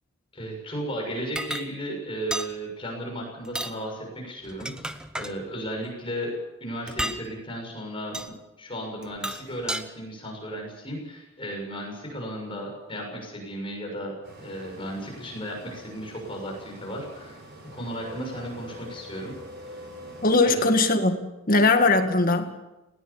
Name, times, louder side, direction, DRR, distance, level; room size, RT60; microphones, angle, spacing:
voice 1, 0.3-6.3 6.6-17.4 17.7-19.3 19.7-19.8 20.4-20.7, equal, 25° left, 1 dB, 6.6 m, -35 dB
sound 1, 1.4-1.7 2.3-2.5 3.4-3.8 4.4-5.3 6.9-7.2 8.1-8.3 9.0-9.8, right 1 dB, 5° right, 0.8 m, -32 dB
sound 2, 14.2-20.4, equal, 50° right, 6.3 m, -44 dB
voice 2, 20.2-21.2 21.5-22.6, left 3 dB, 40° left, 7 dB, 1.9 m, -20 dB
20.0 x 18.5 x 7.2 m, 1.0 s
head